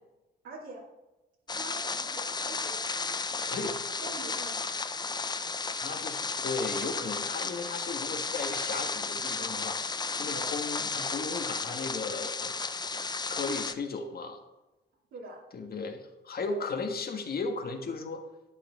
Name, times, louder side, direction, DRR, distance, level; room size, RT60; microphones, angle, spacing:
voice 1, 0.4-0.8 1.5-2.8 4.0-4.7 10.3-10.6 15.1-15.4 16.4-16.6, right 2 dB, 85° right, -6 dB, 2.5 m, -44 dB
sound 1, 1.5-13.7, left 4 dB, 20° left, 0.5 m, -33 dB
voice 2, 5.8-9.8 10.1-12.5 13.0-14.4 15.5-18.2, left 4 dB, 50° left, 5 dB, 1.6 m, -36 dB
11.5 x 8.8 x 3.6 m, 1.0 s
cardioid pair, 90°, 20 cm